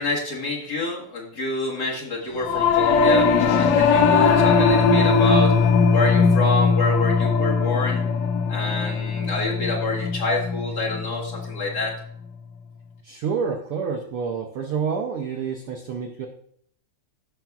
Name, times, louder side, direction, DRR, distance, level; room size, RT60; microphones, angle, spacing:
voice 1, 0.0-5.5 5.9-8.0 8.5-12.0, left 2 dB, 45° left, -4 dB, 1.5 m, -27 dB
Singing / Musical instrument, 2.4-12.0, left 5 dB, 75° left, 1.8 m, -20 dB
voice 2, 13.0-16.3, right 6 dB, 90° right, 2 dB, 1.2 m, -28 dB
14.5 x 5.9 x 2.3 m, 0.65 s
omnidirectional pair, 3.4 m